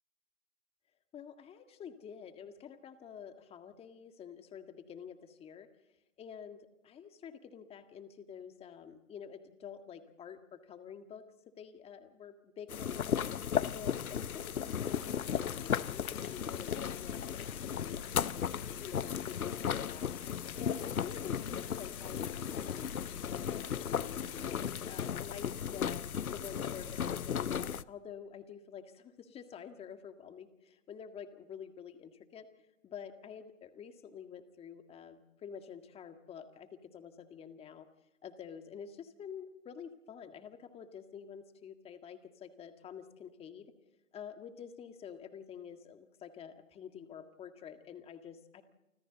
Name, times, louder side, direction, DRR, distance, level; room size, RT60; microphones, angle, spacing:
voice 1, 1.1-5.7 6.2-11.2 11.6-13.3 13.7-20.2 20.6-25.9 26.3-32.5 32.8-37.9 38.2-43.7 44.1-48.6, left 7 dB, 15° left, 7 dB, 1.8 m, -49 dB
sound 1, 12.7-27.8, left 8 dB, 85° left, 0.9 m, -35 dB
sound 2, 14.8-25.1, left 12 dB, 45° left, 3.5 m, -54 dB
29.5 x 25.5 x 4.0 m, 0.96 s
hypercardioid pair, 135°, 42 cm